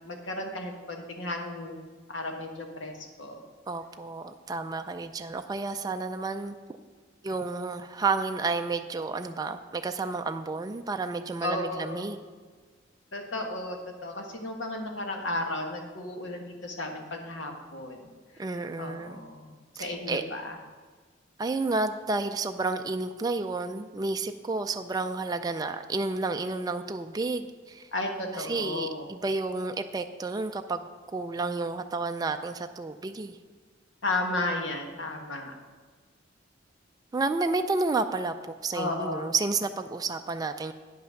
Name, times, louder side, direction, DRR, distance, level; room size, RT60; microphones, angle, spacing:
voice 1, 0.0-1.8 2.1-3.4 11.4-12.1 13.1-18.1 18.8-20.6 27.9-29.1 34.0-35.5 38.7-39.3, left 2 dB, 70° left, 3 dB, 1.3 m, -34 dB
voice 2, 3.7-6.5 7.2-12.2 18.4-19.2 19.8-20.2 21.4-27.9 28.3-33.4 37.1-40.7, right 3 dB, 20° right, 7 dB, 0.3 m, -31 dB
9.4 x 5.7 x 6.4 m, 1.4 s
head